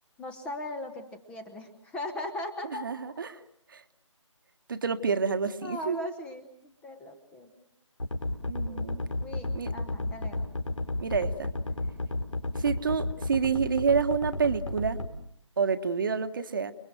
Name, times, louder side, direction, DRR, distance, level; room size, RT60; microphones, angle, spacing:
voice 1, 0.2-2.9 5.6-7.5 8.7-8.8 9.2-10.4, left 1 dB, 5° left, 8 dB, 1.1 m, -39 dB
voice 2, 2.8-3.4 3.7-3.8 4.7-6.0 8.5-9.0 9.5-9.7 11.0-11.5 12.6-15.0 15.6-16.7, right 5 dB, 40° right, 10 dB, 1.4 m, -28 dB
sound 1, 8.0-15.1, left 2 dB, 75° left, 4.5 m, -32 dB
29.0 x 22.0 x 7.8 m, 0.68 s
figure-of-eight pair, 155°, 16 cm